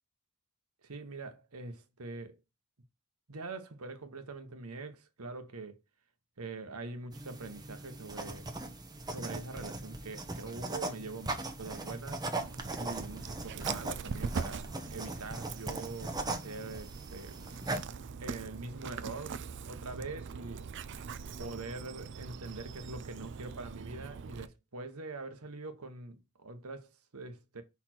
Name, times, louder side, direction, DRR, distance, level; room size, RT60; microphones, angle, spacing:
voice 1, 0.8-2.4 3.3-5.8 6.4-8.5 9.1-12.3 12.8-17.4 18.2-20.7 21.4-27.6, right 3 dB, 80° right, 1.2 m, -44 dB
sound 1, 7.1-17.8, right 2 dB, 20° right, 0.9 m, -39 dB
Dog, 12.4-24.5, right 5 dB, 55° right, 0.5 m, -42 dB
5.7 x 4.2 x 4.4 m
head